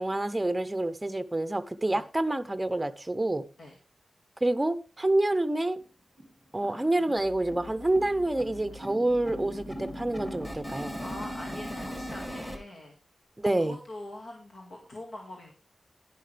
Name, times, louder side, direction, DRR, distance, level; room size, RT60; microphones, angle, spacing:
voice 1, 0.0-3.4 4.4-5.8 6.5-11.0 13.4-13.8, right 1 dB, 15° right, 0.7 m, -27 dB
sound 1, 5.3-5.4 5.7-5.8 6.2-6.4 6.6-12.6, equal, 15° left, 2.5 m, -39 dB
voice 2, 6.6-7.2 11.0-12.9 13.4-15.5, left 1 dB, 70° left, 2.0 m, -44 dB
sound 2, 7.2-8.8 9.1-12.2, left 3 dB, 90° left, 1.0 m, -49 dB
11.0 x 10.5 x 3.4 m
wide cardioid pair, 140°, 0 cm